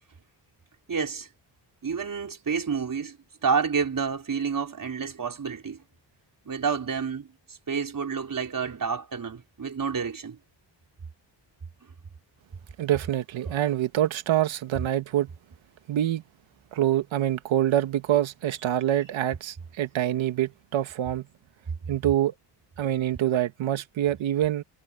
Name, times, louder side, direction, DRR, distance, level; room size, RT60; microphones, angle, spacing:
voice 1, 0.9-1.3 1.8-3.2 3.4-5.8 6.4-10.4, right 6 dB, 45° right, 4.7 m, -29 dB
voice 2, 12.8-15.3 15.9-16.2 16.7-21.3 21.9-22.3 22.8-24.6, right 12 dB, 90° right, 1.9 m, -25 dB
cardioid pair, 70°, 46 cm